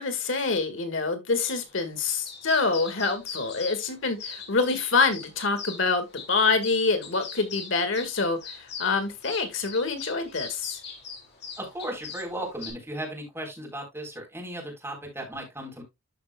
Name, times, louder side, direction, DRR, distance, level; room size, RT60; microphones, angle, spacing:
voice 1, 0.0-10.8, left 4 dB, 85° left, 1.8 m, -26 dB
sound 1, 1.4-12.7, left 6 dB, 55° left, 4.3 m, -41 dB
voice 2, 11.6-15.8, right 1 dB, 15° right, 3.7 m, -36 dB
12.5 x 5.1 x 2.2 m
head